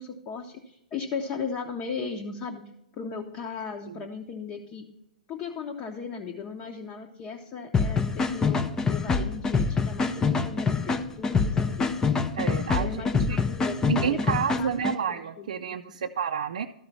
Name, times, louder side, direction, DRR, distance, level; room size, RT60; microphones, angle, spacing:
voice 1, 0.0-2.6 3.0-4.8 5.3-12.0 12.8-16.1, left 5 dB, 30° left, 1 dB, 0.9 m, -37 dB
sound 1, 7.7-14.9, left 4 dB, 15° left, 0.6 m, -25 dB
voice 2, 12.4-13.0 13.3-13.4 13.9-16.7, right 8 dB, 60° right, 4 dB, 0.5 m, -29 dB
13.0 x 4.8 x 5.4 m, 0.84 s
figure-of-eight pair, 115°, 4 cm